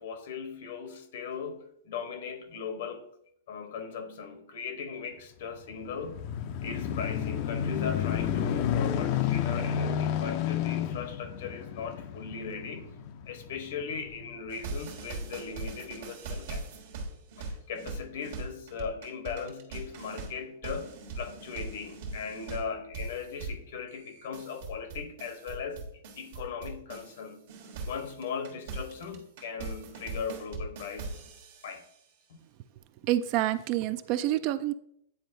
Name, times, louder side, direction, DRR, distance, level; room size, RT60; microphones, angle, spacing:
voice 1, 0.0-3.0 3.5-6.2 6.6-12.9 13.3-16.6 17.4-25.9 26.2-27.4 27.8-31.2 31.6-31.8 32.3-32.4, left 6 dB, 65° left, 1.0 m, -38 dB
sound 1, 5.6-14.4 15.0-15.1, left 9 dB, 45° left, 0.5 m, -31 dB
sound 2, 14.5-27.2 27.5-31.9, right 3 dB, 60° right, 1.3 m, -40 dB
voice 2, 33.0-34.7, right 14 dB, 40° right, 0.3 m, -27 dB
9.3 x 4.1 x 2.6 m
hypercardioid pair, 140°, 0 cm